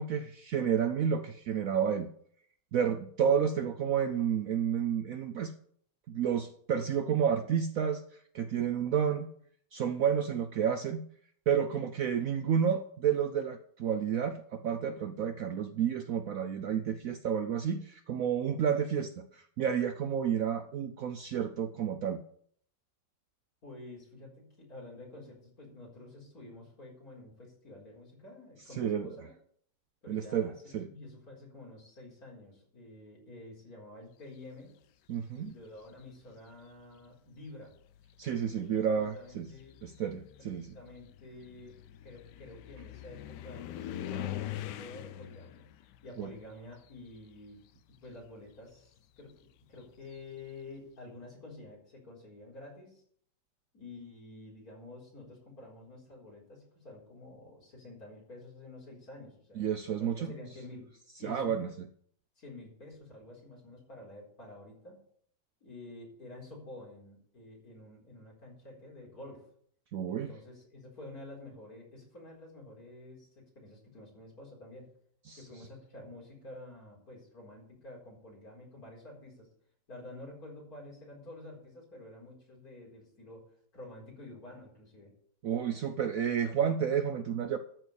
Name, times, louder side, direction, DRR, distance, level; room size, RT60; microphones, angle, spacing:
voice 1, 0.0-2.1 2.7-5.5 6.1-9.3 9.7-11.0 11.5-22.2 28.7-29.1 30.1-30.9 35.1-35.5 38.2-39.5 39.8-40.7 46.2-46.3 59.6-60.3 61.2-61.7 69.9-70.3 75.3-75.4 85.4-87.6, right 8 dB, 65° right, 9 dB, 0.9 m, -30 dB
voice 2, 23.6-29.3 30.0-30.5 30.9-34.8 35.4-37.8 38.4-39.7 40.4-45.7 46.0-47.6 48.0-53.0 53.7-59.7 60.0-60.9 61.2-61.6 62.4-65.0 65.6-69.4 70.1-74.9 75.4-79.5 79.9-83.4 83.7-85.1, left 2 dB, 55° left, -3 dB, 4.8 m, -49 dB
sound 1, 35.5-36.0 37.0-37.1 37.7-47.6 47.9-50.5, left 12 dB, 75° left, 1.2 m, -44 dB
13.0 x 4.7 x 8.1 m, 0.62 s
omnidirectional pair, 1.9 m